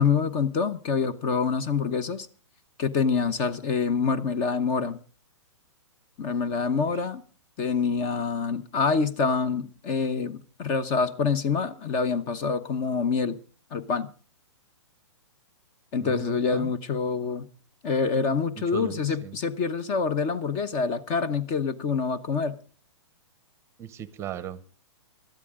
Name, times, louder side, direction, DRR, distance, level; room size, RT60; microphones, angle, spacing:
voice 1, 0.0-2.3 2.8-5.0 6.2-7.2 7.6-13.4 13.7-14.1 15.9-17.5 17.8-22.6, left 5 dB, 30° left, 1.0 m, -26 dB
voice 2, 16.0-16.7 18.6-19.4 23.8-24.7, right 9 dB, 15° right, 0.8 m, -38 dB
20.0 x 13.0 x 3.7 m
hypercardioid pair, 150°, 16 cm